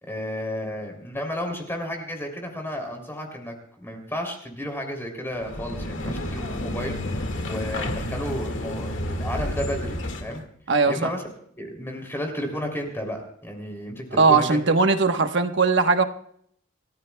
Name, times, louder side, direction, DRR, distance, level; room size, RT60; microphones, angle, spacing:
voice 1, 0.0-10.4 10.9-11.2 11.6-14.8, equal, 10° left, 2 dB, 3.0 m, -32 dB
sound 1, 5.3-10.4, left 1 dB, 65° left, 1.9 m, -30 dB
voice 2, 10.7-11.1 14.2-16.0, right 4 dB, 60° right, 7 dB, 1.1 m, -19 dB
27.5 x 15.0 x 2.3 m, 0.66 s
head